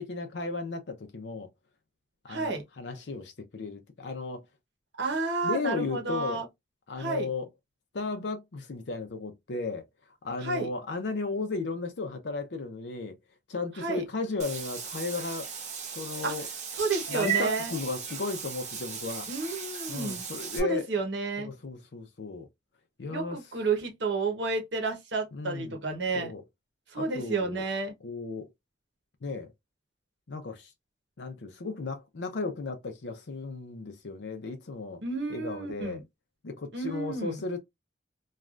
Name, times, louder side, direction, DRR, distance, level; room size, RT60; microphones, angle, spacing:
voice 1, 0.0-1.5 2.2-4.4 5.4-6.4 6.9-7.5 7.9-9.9 10.2-13.2 13.5-15.5 16.0-16.5 17.1-19.3 19.9-20.9 21.4-22.5 23.0-23.4 25.3-25.8 26.1-26.4 26.9-27.6 28.0-28.5 29.2-29.5 30.3-30.7 31.2-35.0 35.3-36.0 36.4-37.6, left 3 dB, 80° left, 0.6 m, -35 dB
voice 2, 2.3-2.6 5.0-6.5 7.0-7.3 10.4-10.7 13.8-14.0 16.2-16.3 16.7-17.7 19.3-20.2 20.6-21.5 23.1-26.3 26.9-27.9 35.0-36.0 36.7-37.4, right 3 dB, 80° right, 1.0 m, -31 dB
Meow / Water / Bathtub (filling or washing), 14.4-20.6, right 7 dB, 40° right, 0.7 m, -36 dB
3.2 x 2.3 x 2.4 m
head